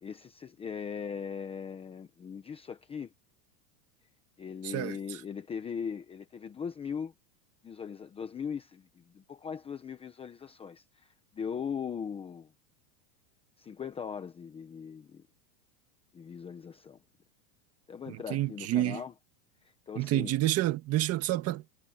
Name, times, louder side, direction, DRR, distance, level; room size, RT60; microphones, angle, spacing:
voice 1, 0.0-3.1 4.4-7.1 7.6-11.1 11.3-12.5 13.6-15.2 16.1-17.0 17.9-19.1 19.9-20.3, left 7 dB, 10° left, 0.9 m, -39 dB
voice 2, 4.6-5.2 18.1-19.0 20.0-21.7, right 15 dB, 30° right, 1.8 m, -29 dB
supercardioid pair, 165°, 50 cm